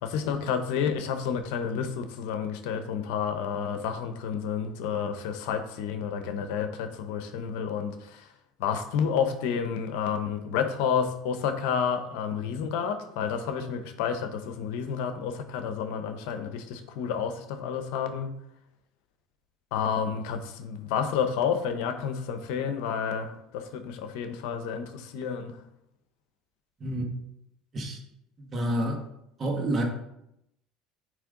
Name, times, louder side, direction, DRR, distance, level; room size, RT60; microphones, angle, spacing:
voice 1, 0.0-8.3 8.6-18.3 19.7-25.6, left 7 dB, 80° left, 8 dB, 0.8 m, -30 dB
voice 2, 28.4-29.0 29.4-29.8, right 1 dB, 35° right, 1 dB, 1.7 m, -28 dB
9.2 x 3.3 x 3.8 m, 0.81 s
supercardioid pair, 95°, 0 cm